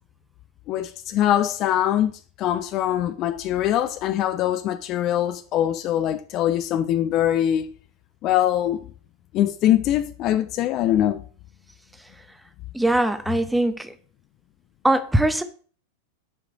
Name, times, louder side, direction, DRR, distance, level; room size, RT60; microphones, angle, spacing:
voice 1, 0.7-2.1 2.4-7.7 8.2-8.8 9.3-11.2, left 11 dB, 35° left, 0.5 m, -22 dB
voice 2, 12.7-13.9 14.8-15.4, right 1 dB, 5° right, 0.8 m, -21 dB
7.1 x 4.8 x 4.9 m
figure-of-eight pair, 90°, 0 cm